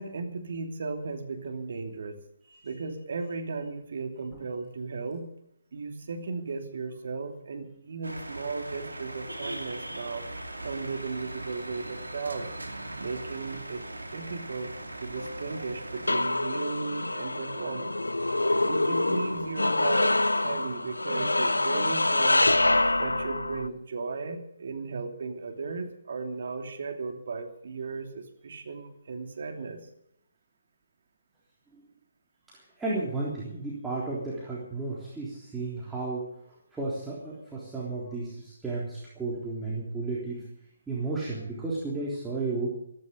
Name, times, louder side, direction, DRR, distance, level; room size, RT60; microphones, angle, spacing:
voice 1, 0.0-2.2 2.6-5.3 5.7-10.3 10.6-12.5 13.0-14.7 15.0-18.0 18.6-22.5 23.0-29.8, right 4 dB, 55° right, 5 dB, 2.9 m, -36 dB
sound 1, 8.0-16.1, right 1 dB, 85° right, 2.6 m, -39 dB
sound 2, 15.2-23.7, left 2 dB, 85° left, 0.8 m, -26 dB
voice 2, 32.5-36.3 36.7-40.5 40.9-42.7, right 3 dB, 5° right, -6 dB, 3.6 m, -33 dB
14.5 x 14.0 x 6.7 m, 0.76 s
figure-of-eight pair, 140°, 0 cm